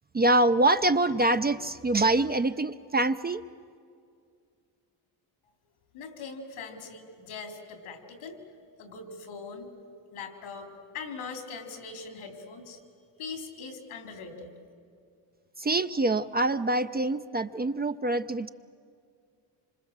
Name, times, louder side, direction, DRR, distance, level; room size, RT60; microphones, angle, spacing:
voice 1, 0.1-3.4 15.6-18.5, right 2 dB, 20° right, 10 dB, 0.6 m, -25 dB
voice 2, 5.9-8.4 8.8-9.7 10.1-12.8 13.2-14.5, left 4 dB, 85° left, 4 dB, 3.6 m, -41 dB
26.5 x 25.5 x 7.4 m, 2.3 s
supercardioid pair, 70°, 49 cm